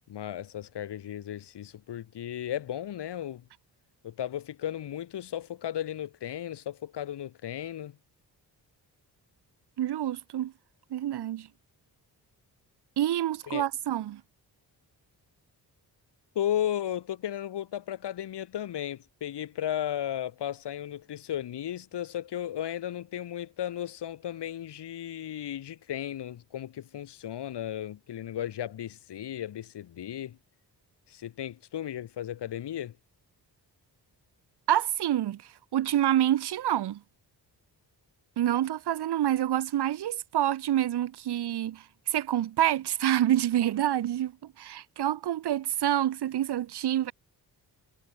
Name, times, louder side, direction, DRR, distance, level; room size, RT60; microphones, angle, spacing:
voice 1, 0.1-3.5 4.0-8.0 13.5-13.6 16.4-30.4 31.1-32.9, left 11 dB, 85° left, 3.6 m, -35 dB
voice 2, 9.8-10.5 10.9-11.5 13.0-14.2 34.7-35.4 35.7-37.0 38.4-47.1, right 12 dB, 80° right, 1.3 m, -27 dB
wide cardioid pair, 135°, 40 cm